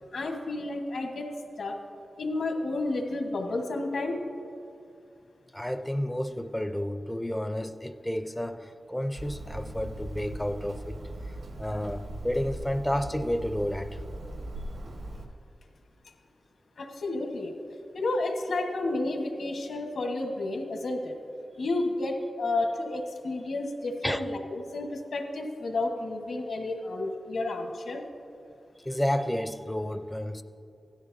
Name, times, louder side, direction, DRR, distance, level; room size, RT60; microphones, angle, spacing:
voice 1, 0.1-1.3 1.6-1.7 2.2-4.2 16.8-17.6 17.9-21.1 21.6-28.0, left 2 dB, 75° left, 2 dB, 1.4 m, -31 dB
voice 2, 5.5-11.0 11.6-14.0 24.0-24.2 28.8-30.4, equal, 5° left, 9 dB, 0.4 m, -31 dB
Hammer, 9.2-15.3, right 1 dB, 85° right, 1.4 m, -40 dB
16.5 x 12.5 x 2.7 m, 2.5 s
wide cardioid pair, 165°, 0 cm